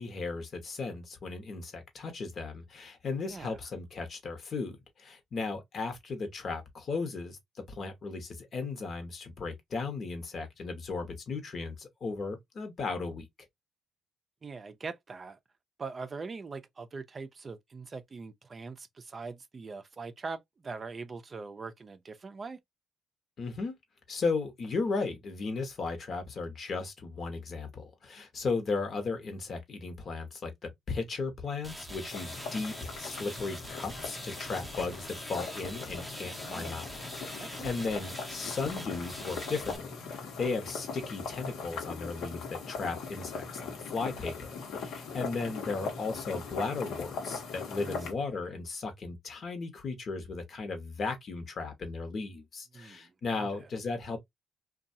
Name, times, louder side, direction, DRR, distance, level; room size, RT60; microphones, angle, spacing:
voice 1, 0.0-7.4 7.7-13.2 23.4-23.7 24.1-36.9 37.1-54.2, left 4 dB, 55° left, 1.0 m, -36 dB
voice 2, 3.3-3.6 14.4-15.4 15.8-22.6 36.4-36.8 37.4-37.7 47.8-48.1 52.7-53.7, right 4 dB, 35° right, 0.4 m, -42 dB
sound 1, 31.6-39.8, equal, ahead, 0.7 m, -44 dB
sound 2, 32.1-48.1, left 5 dB, 80° left, 1.0 m, -40 dB
2.6 x 2.3 x 2.5 m
cardioid pair, 90°, 0 cm